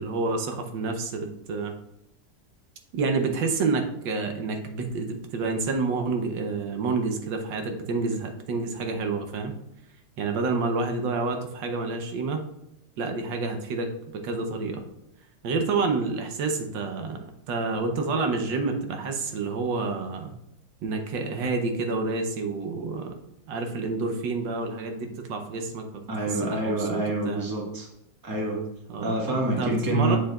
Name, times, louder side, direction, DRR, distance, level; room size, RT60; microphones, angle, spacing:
voice 1, 0.0-1.7 2.9-9.5 10.2-12.4 13.0-13.9 14.2-14.8 15.4-17.2 17.5-20.3 20.8-23.2 23.5-27.5 28.9-29.1 29.6-30.2, right 3 dB, 80° right, 5 dB, 1.5 m, -28 dB
voice 2, 26.1-27.9 28.2-28.6 29.0-30.2, right 1 dB, 15° right, -2 dB, 1.1 m, -27 dB
7.5 x 6.7 x 2.3 m, 0.85 s
omnidirectional pair, 2.0 m